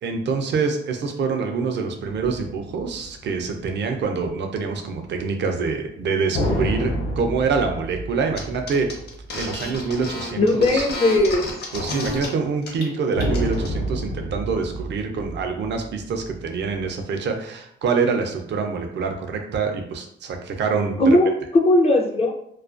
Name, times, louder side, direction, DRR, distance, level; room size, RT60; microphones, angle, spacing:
voice 1, 0.0-8.9 9.4-10.9 11.7-21.2, right 5 dB, 60° right, 4 dB, 0.4 m, -25 dB
sound 1, 2.1-4.0 6.3-10.1 10.4-10.5 13.2-16.8, equal, 85° left, 0.8 m, -29 dB
sound 2, 8.3-8.4 8.7-12.2 12.6-12.9 13.2-13.7, left 2 dB, 55° left, 0.7 m, -31 dB
voice 2, 10.4-11.5 21.0-22.3, left 1 dB, 30° left, 0 dB, 0.4 m, -18 dB
2.3 x 2.2 x 2.4 m, 0.72 s
cardioid pair, 100°, 20 cm